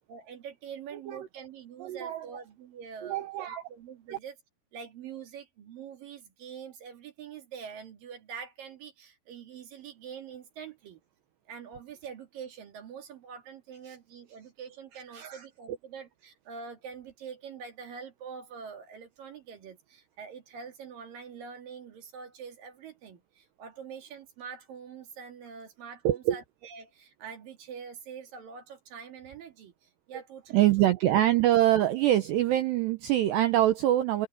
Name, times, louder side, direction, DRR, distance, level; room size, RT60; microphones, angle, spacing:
voice 1, 0.1-4.3 4.7-11.0 11.5-30.9, right 6 dB, 55° right, 3.0 m, -45 dB
voice 2, 1.8-2.3 3.0-3.6 4.1-4.2 13.9-14.0 15.1-15.4 26.0-26.4 30.5-34.3, right 13 dB, 80° right, 2.6 m, -25 dB
open air
omnidirectional pair, 6.0 m